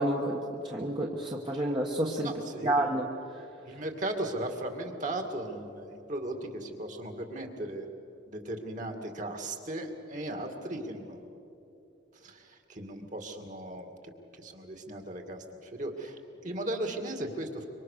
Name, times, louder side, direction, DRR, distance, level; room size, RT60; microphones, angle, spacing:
voice 1, 0.0-2.3 2.6-3.1, right 1 dB, 25° right, -1 dB, 1.3 m, -29 dB
voice 2, 2.2-2.7 3.7-7.9 8.3-11.2 12.2-13.9 14.4-17.7, right 1 dB, 40° right, 5 dB, 2.3 m, -37 dB
26.0 x 24.5 x 6.7 m, 2.8 s
head